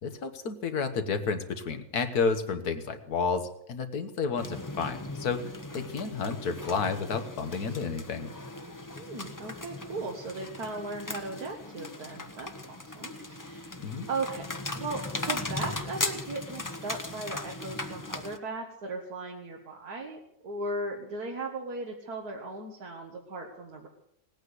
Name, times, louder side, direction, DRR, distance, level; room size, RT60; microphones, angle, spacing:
voice 1, 0.0-8.3 13.8-14.1, left 5 dB, 80° left, 7 dB, 1.9 m, -31 dB
sound 1, 4.4-18.4, left 2 dB, 15° left, 0.7 m, -38 dB
voice 2, 8.9-13.7 14.1-14.5 14.7-23.9, right 3 dB, 80° right, 1 dB, 2.1 m, -37 dB
18.0 x 9.0 x 8.0 m, 0.75 s
omnidirectional pair, 1.6 m